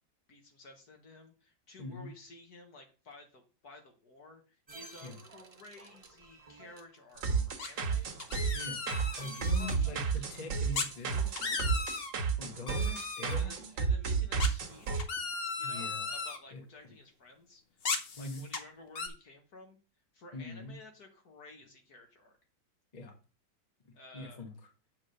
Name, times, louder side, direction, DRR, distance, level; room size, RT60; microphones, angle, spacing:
voice 1, 0.3-8.4 8.8-9.0 9.3-10.2 13.4-15.1 15.6-17.8 18.2-19.8 20.1-22.4 23.9-24.5, left 2 dB, 60° left, 3 dB, 1.9 m, -54 dB
voice 2, 1.8-2.1 5.0-5.2 7.3-7.4 8.5-8.8 9.2-11.4 12.4-13.5 15.6-16.1 16.5-16.6 18.1-18.4 20.3-20.7 22.9-23.1 23.8-24.5, left 2 dB, 25° left, 2 dB, 1.4 m, -43 dB
sound 1, 4.7-11.9, right 3 dB, 40° right, 0.5 m, -55 dB
sound 2, 7.2-15.0, right 5 dB, 85° right, 2.0 m, -32 dB
sound 3, 7.6-7.9 8.2-9.8 10.7-10.9 11.2-12.1 12.7-13.4 14.4-16.4 17.8-18.6 19.0-19.1, left 4 dB, 45° left, 0.9 m, -36 dB
7.6 x 3.8 x 6.5 m, 0.34 s
omnidirectional pair, 1.9 m